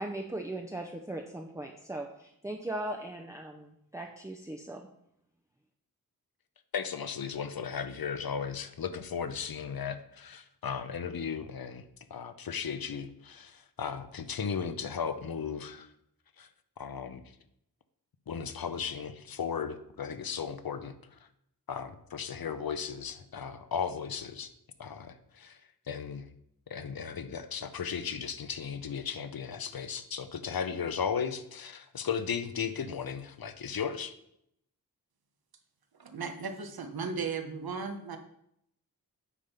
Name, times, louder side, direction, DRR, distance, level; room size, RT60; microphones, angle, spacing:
voice 1, 0.0-4.9, right 1 dB, 10° right, 2 dB, 0.6 m, -39 dB
voice 2, 6.7-11.8 12.1-15.9 16.4-16.5 16.8-17.2 18.3-21.0 21.7-24.5 24.8-25.6 25.9-26.3 26.7-34.1, left 7 dB, 75° left, 11 dB, 0.7 m, -36 dB
voice 3, 36.0-38.2, right 5 dB, 80° right, 7 dB, 1.0 m, -36 dB
8.4 x 3.6 x 5.7 m, 0.75 s
wide cardioid pair, 75°, 36 cm